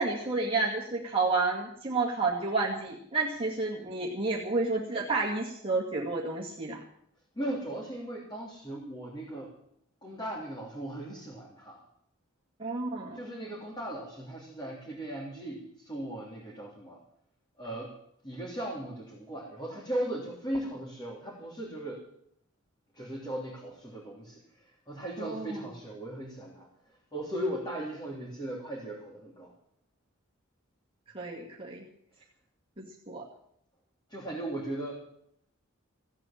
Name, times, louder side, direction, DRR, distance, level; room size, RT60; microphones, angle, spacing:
voice 1, 0.0-6.8 12.6-13.2 25.2-25.6 31.1-31.8 32.8-33.2, right 3 dB, 25° right, -4 dB, 2.2 m, -30 dB
voice 2, 7.4-9.5 10.0-11.8 13.1-17.0 17.6-17.9 18.2-22.0 22.9-26.7 27.1-29.5 34.1-35.0, right 1 dB, 20° left, -4 dB, 3.4 m, -37 dB
16.5 x 8.9 x 8.9 m, 0.71 s
head